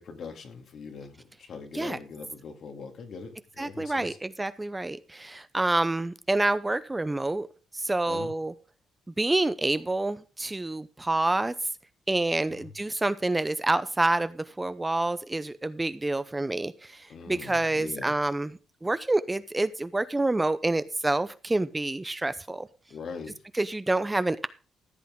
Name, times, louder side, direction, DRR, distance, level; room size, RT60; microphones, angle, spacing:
voice 1, 0.0-4.2 8.1-8.3 12.5-12.7 17.1-18.1 22.9-23.4, left 5 dB, 60° left, 5 dB, 2.3 m, -42 dB
voice 2, 3.6-7.5 7.7-8.5 9.2-11.5 12.1-22.7 23.6-24.5, right 2 dB, 15° right, 13 dB, 0.7 m, -28 dB
14.5 x 8.2 x 3.7 m, 0.35 s
cardioid pair, 90°, 0 cm